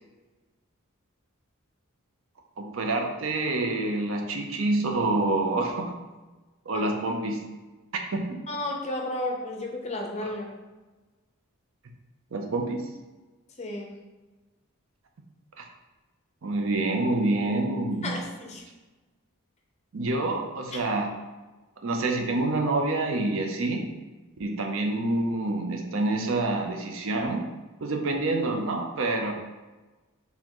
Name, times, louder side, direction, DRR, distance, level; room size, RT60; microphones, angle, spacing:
voice 1, 2.6-5.9 6.7-7.4 7.9-8.4 10.2-10.3 12.3-12.8 15.6-15.7 16.4-18.2 19.9-21.1 21.8-23.9 24.4-27.5 27.8-29.3, right 2 dB, 65° right, 3 dB, 0.5 m, -27 dB
voice 2, 8.5-10.5 13.6-13.9 18.0-18.6, left 1 dB, 30° left, 1 dB, 0.6 m, -32 dB
4.4 x 3.4 x 3.0 m, 1.2 s
head